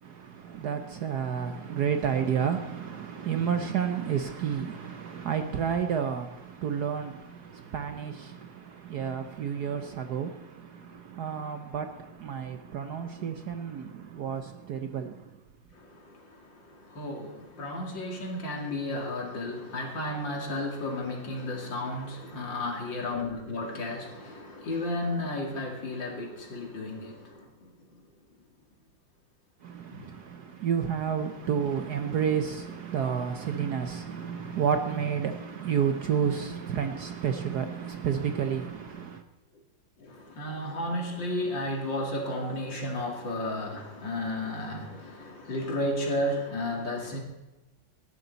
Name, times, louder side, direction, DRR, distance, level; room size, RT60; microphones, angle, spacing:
voice 1, 0.0-15.4 29.6-39.2, right 7 dB, 60° right, 1.2 m, -31 dB
voice 2, 15.7-27.7 29.9-30.1 40.0-47.2, left 1 dB, 60° left, 3.1 m, -33 dB
18.5 x 12.0 x 4.0 m
omnidirectional pair, 2.3 m